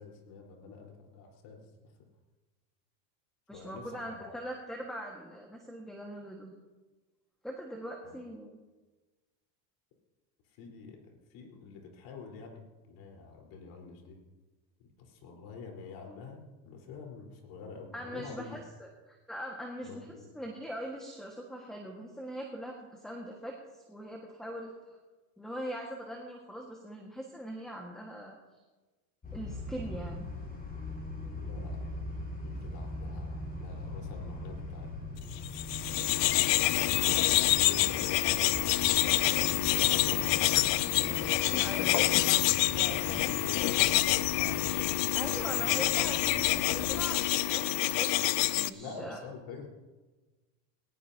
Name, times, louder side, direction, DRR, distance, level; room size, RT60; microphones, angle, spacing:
voice 1, 0.0-1.7 3.5-4.3 8.0-8.2 10.5-14.2 14.8-18.5 19.9-20.3 31.4-32.1 32.4-34.9 36.5-41.4 42.0-45.7 48.7-49.7, left 4 dB, 60° left, 1 dB, 4.3 m, -46 dB
voice 2, 3.5-6.5 7.4-8.6 17.9-20.1 20.3-23.6 23.9-24.7 25.4-28.4 29.3-30.3 41.6-42.4 45.1-49.2, equal, ahead, 0 dB, 1.6 m, -41 dB
sound 1, 29.2-47.0, left 2 dB, 15° left, 6.5 m, -41 dB
sound 2, 35.4-48.7, left 17 dB, 75° left, 0.7 m, -27 dB
20.0 x 19.0 x 2.8 m, 1.2 s
supercardioid pair, 135°, 50 cm